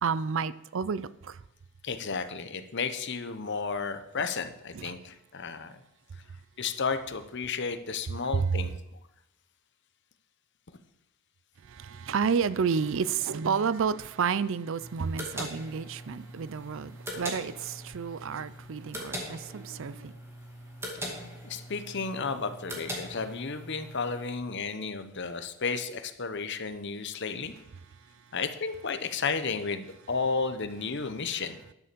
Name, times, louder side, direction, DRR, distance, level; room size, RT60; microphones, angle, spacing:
voice 1, 0.0-1.4 4.7-4.9 8.3-8.5 11.6-20.1, right 6 dB, 60° right, 0.4 m, -30 dB
voice 2, 1.8-5.7 6.6-8.7 21.2-27.5 28.3-31.6, left 5 dB, 50° left, 0.9 m, -33 dB
sound 1, 14.8-24.3, equal, 10° right, 2.2 m, -41 dB
11.0 x 6.9 x 6.8 m
head